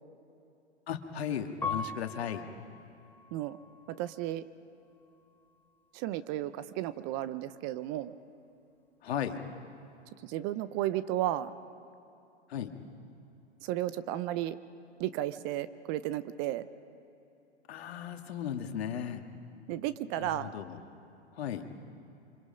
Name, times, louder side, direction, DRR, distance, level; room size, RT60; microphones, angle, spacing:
voice 1, 0.9-2.5 9.0-9.4 12.5-12.7 17.7-19.2 20.2-20.8 21.3-21.6, left 9 dB, 65° left, 6 dB, 1.9 m, -36 dB
Piano, 1.6-4.4 5.0-5.7, left 5 dB, 5° left, 1.0 m, -41 dB
voice 2, 4.0-4.4 5.9-8.1 10.2-11.5 13.6-14.6 15.0-16.6 19.7-20.5, right 13 dB, 35° right, 14 dB, 0.7 m, -33 dB
26.5 x 26.0 x 5.2 m, 2.9 s
hypercardioid pair, 115°, 34 cm